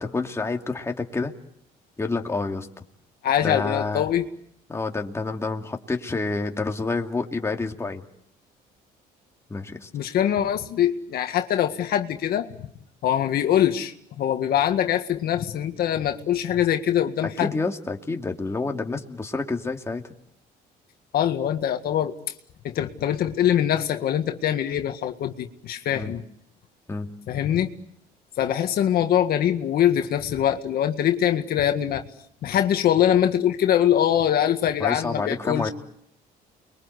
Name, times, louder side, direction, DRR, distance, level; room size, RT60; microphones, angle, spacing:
voice 1, 0.0-1.3 2.0-2.7 3.4-4.1 4.7-8.0 9.5-9.9 17.2-20.1 25.9-26.2 26.9-27.1 34.8-35.7, left 3 dB, 15° left, 3 dB, 2.5 m, -28 dB
voice 2, 3.2-4.3 9.9-12.5 13.0-17.5 21.1-22.2 22.6-26.2 27.3-27.7 28.4-32.0 32.4-35.7, left 10 dB, 65° left, 6 dB, 1.9 m, -23 dB
30.0 x 23.0 x 8.2 m, 0.72 s
cardioid pair, 110°, 17 cm